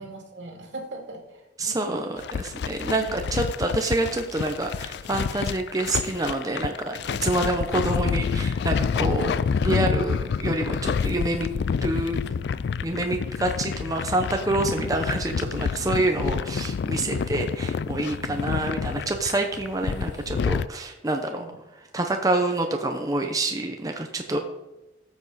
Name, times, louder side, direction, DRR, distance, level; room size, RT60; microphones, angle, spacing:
voice 1, 0.0-2.1 17.0-17.3 18.3-18.6 21.3-21.6 24.3-24.4, right 2 dB, 80° right, 1 dB, 2.5 m, -41 dB
voice 2, 1.6-9.4 9.6-11.5 11.8-12.2 12.8-21.4 21.9-24.4, right 2 dB, 20° right, 4 dB, 0.7 m, -27 dB
sound 1, 2.2-20.7, left 6 dB, 60° left, 0.3 m, -28 dB
13.0 x 7.2 x 4.1 m, 1.0 s
head